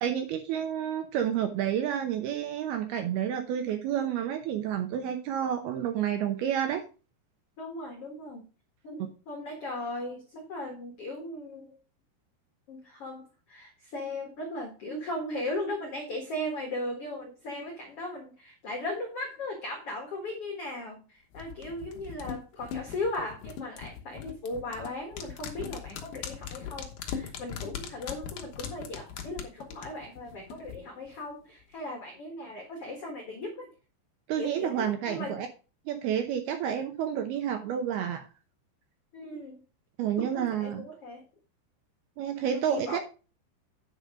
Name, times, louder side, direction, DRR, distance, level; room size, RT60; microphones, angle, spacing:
voice 1, 0.0-6.8 34.3-35.5 35.9-38.3 40.0-40.9 42.2-43.0, right 9 dB, 75° right, 6 dB, 2.4 m, -30 dB
voice 2, 7.6-8.4 8.8-11.7 12.7-33.7 34.4-35.4 39.1-39.6 40.2-41.2 42.4-43.0, left 1 dB, 85° left, 2 dB, 1.3 m, -37 dB
sound 1, 21.3-30.8 31.1-31.2, left 8 dB, 65° left, 2.3 m, -40 dB
9.7 x 5.4 x 4.9 m, 0.33 s
omnidirectional pair, 5.4 m